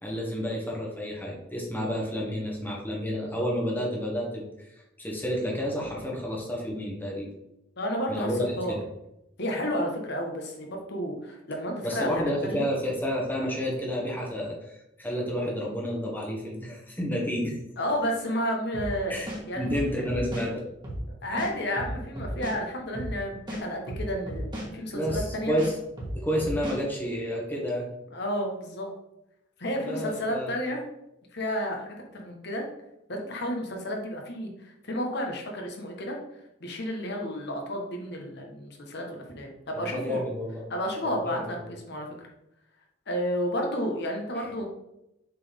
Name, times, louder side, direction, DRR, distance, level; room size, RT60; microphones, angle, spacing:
voice 1, 0.0-4.4 5.0-7.3 8.1-8.8 11.8-14.7 15.0-17.5 19.1-19.3 19.6-20.6 24.9-25.7 26.1-27.9 29.8-30.5 39.7-40.6 41.2-41.5 44.4-44.5, equal, 10° left, -2 dB, 1.5 m, -30 dB
voice 2, 7.8-8.8 9.4-12.6 17.8-19.9 21.2-25.5 28.1-28.9 29.6-30.8 31.3-32.6 33.1-36.2 36.6-40.2 40.7-41.6 41.9-42.3 43.1-44.7, equal, 60° left, 1 dB, 1.4 m, -31 dB
sound 1, 18.7-18.9 19.3-20.5 20.8-21.0 21.4-22.6 22.9-23.1 23.5-24.7 25.0-25.2 25.6-26.8, equal, 25° right, 2.0 m, -34 dB
7.4 x 4.3 x 3.6 m, 0.87 s
head